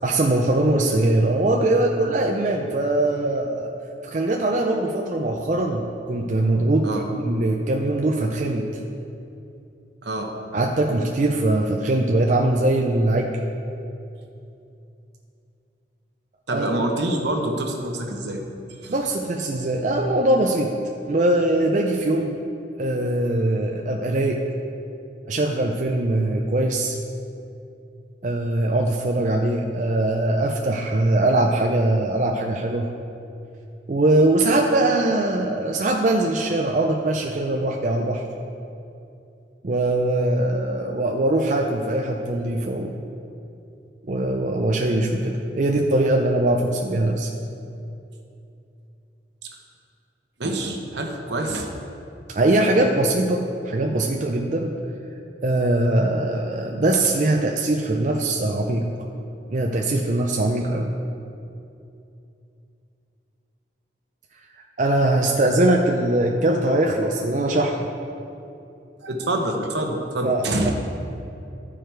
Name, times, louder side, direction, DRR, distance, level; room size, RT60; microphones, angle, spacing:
voice 1, 0.0-3.7 4.0-8.7 10.5-13.3 16.5-16.7 18.9-20.8 21.1-22.4 22.8-24.4 25.3-27.0 28.2-32.9 33.9-38.2 39.6-42.9 44.1-47.3 52.3-54.8 55.4-58.9 59.5-60.9 64.8-67.9 70.2-70.7, right 1 dB, 40° right, 0 dB, 0.5 m, -21 dB
voice 2, 10.0-10.3 16.5-18.4 18.7-18.9 49.4-49.5 50.4-51.7 69.0-70.7, right 1 dB, 75° right, 2 dB, 1.0 m, -26 dB
12.0 x 4.9 x 4.5 m, 2.7 s
head